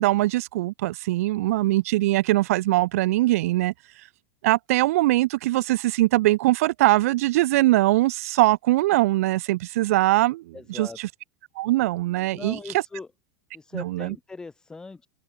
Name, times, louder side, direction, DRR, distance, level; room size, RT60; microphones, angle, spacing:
voice 1, 0.0-3.7 4.4-10.4 10.7-11.1 11.6-12.6 13.7-14.1, right 17 dB, 70° right, 0.8 m, -22 dB
voice 2, 10.5-11.0 12.3-13.1 13.5-15.1, left 3 dB, 10° left, 6.1 m, -39 dB
supercardioid pair, 165°, 8 cm